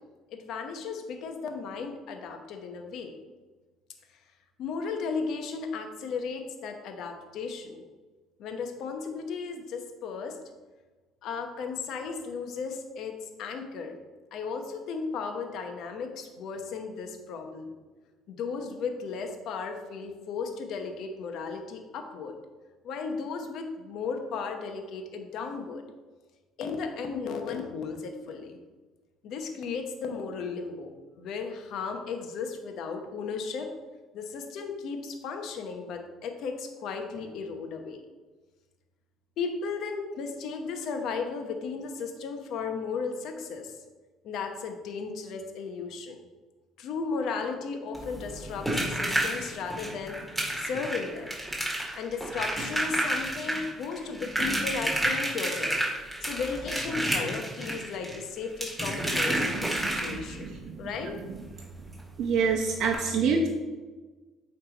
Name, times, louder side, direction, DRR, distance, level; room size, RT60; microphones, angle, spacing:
voice 1, 0.3-3.1 4.6-7.8 8.4-10.4 11.2-13.1 13.4-14.0 14.3-17.7 18.3-22.4 22.8-25.8 26.6-28.6 29.2-30.9 31.2-33.7 34.1-38.0 39.4-43.7 44.2-46.2 46.8-50.2 50.6-51.3 52.0-55.8 56.2-61.2, left 5 dB, 65° left, 5 dB, 0.9 m, -35 dB
sound 1, 47.9-60.4 61.9-62.0 62.3-62.4 62.8-62.9, right 1 dB, 5° right, 2.0 m, -30 dB
voice 2, 59.5-61.4 62.2-63.5, right 5 dB, 60° right, -1 dB, 0.8 m, -28 dB
8.8 x 3.4 x 4.0 m, 1.3 s
supercardioid pair, 90°, 0 cm